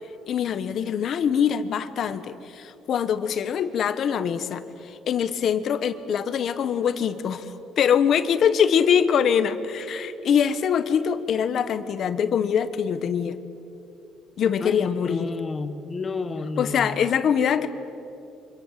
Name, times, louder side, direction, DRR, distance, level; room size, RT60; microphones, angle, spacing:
voice 1, 0.3-13.4 14.4-15.3 16.6-17.7, left 8 dB, 50° left, 12 dB, 1.3 m, -23 dB
voice 2, 14.6-17.1, left 3 dB, 25° left, 9 dB, 1.5 m, -31 dB
29.0 x 26.0 x 7.6 m, 2.9 s
cardioid pair, 150°, 0 cm